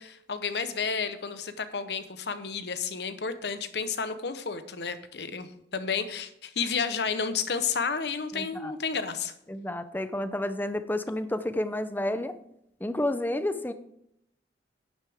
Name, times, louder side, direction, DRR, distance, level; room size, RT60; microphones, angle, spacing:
voice 1, 0.0-9.3, left 5 dB, 70° left, 11 dB, 0.9 m, -31 dB
voice 2, 8.3-8.7 9.5-12.4 12.8-13.7, left 1 dB, 10° left, 11 dB, 0.6 m, -30 dB
10.5 x 10.5 x 3.5 m, 0.76 s
head